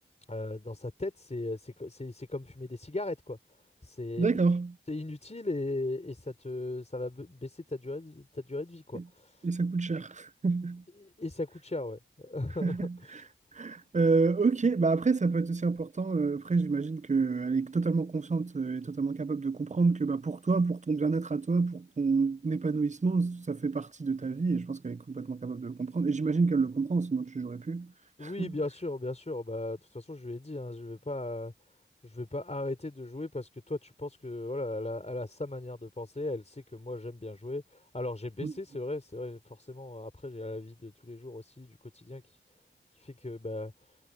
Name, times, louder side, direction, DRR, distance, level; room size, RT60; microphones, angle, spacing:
voice 1, 0.3-3.4 3.8-4.5 4.9-9.4 11.0-12.8 13.1-13.2 28.2-31.5 32.0-42.2 43.0-43.7, left 2 dB, 35° left, 3.9 m, -37 dB
voice 2, 4.2-4.8 8.9-9.0 9.4-10.8 12.6-13.2 13.5-27.9 28.2-28.6 38.4-38.5, right 4 dB, 35° right, 0.6 m, -28 dB
cardioid pair, 40°, 21 cm